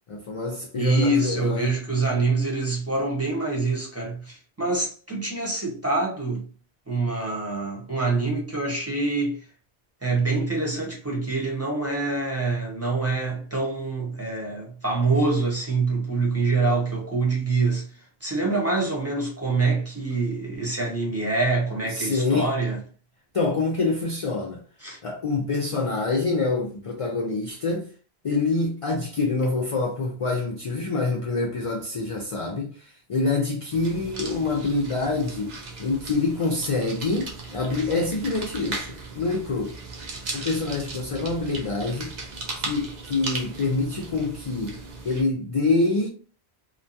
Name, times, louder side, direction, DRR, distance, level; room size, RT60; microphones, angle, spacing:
voice 1, 0.1-1.7 21.9-22.5 23.3-24.6 25.0-27.9 28.2-35.5 35.8-39.8 40.3-42.1 42.6-44.8 45.0-46.1, left 3 dB, 60° left, 0.3 m, -26 dB
voice 2, 0.7-6.4 6.9-9.4 10.0-17.9 18.2-22.8 24.8-25.0, right 3 dB, 15° right, 0.8 m, -25 dB
sound 1, 33.7-45.2, right 3 dB, 50° right, 0.7 m, -37 dB
2.8 x 2.2 x 2.6 m
omnidirectional pair, 1.1 m